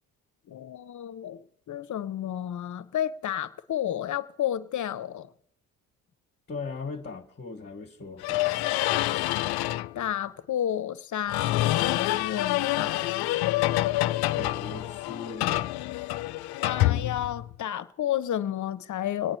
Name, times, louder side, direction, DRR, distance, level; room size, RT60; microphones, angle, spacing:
voice 1, 0.5-5.3 9.9-13.3 16.5-19.4, left 11 dB, 50° left, 0.8 m, -31 dB
voice 2, 6.5-8.7 14.3-15.7, left 4 dB, 30° left, 1.2 m, -39 dB
sound 1, 8.2-9.9 11.3-17.6, left 16 dB, 75° left, 0.5 m, -27 dB
25.0 x 8.8 x 4.3 m
supercardioid pair, 60°, 39 cm